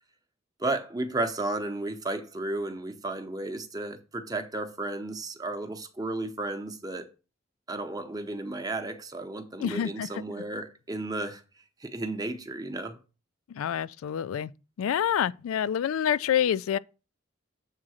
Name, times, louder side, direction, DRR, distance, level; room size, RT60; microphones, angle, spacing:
voice 1, 0.6-7.1 7.7-11.4 11.8-13.0, right 2 dB, 20° right, 0.8 m, -33 dB
voice 2, 9.6-10.1 13.6-14.5 14.8-16.8, left 9 dB, 85° left, 0.3 m, -27 dB
7.3 x 3.8 x 6.3 m
head